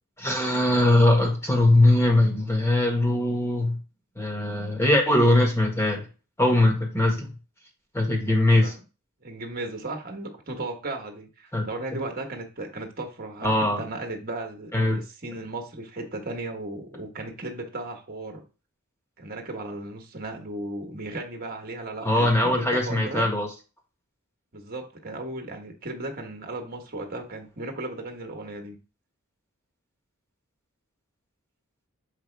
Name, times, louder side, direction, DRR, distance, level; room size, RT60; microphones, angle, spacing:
voice 1, 0.2-3.8 4.2-6.0 6.4-7.3 7.9-8.7 11.5-11.6 11.9-12.0 13.4-13.8 14.7-15.0 22.0-23.5, left 1 dB, 10° left, 1 dB, 1.5 m, -21 dB
voice 2, 9.2-18.4 19.2-23.3 24.5-28.8, right 2 dB, 40° right, 3 dB, 1.4 m, -35 dB
6.9 x 5.2 x 3.4 m, 0.33 s
head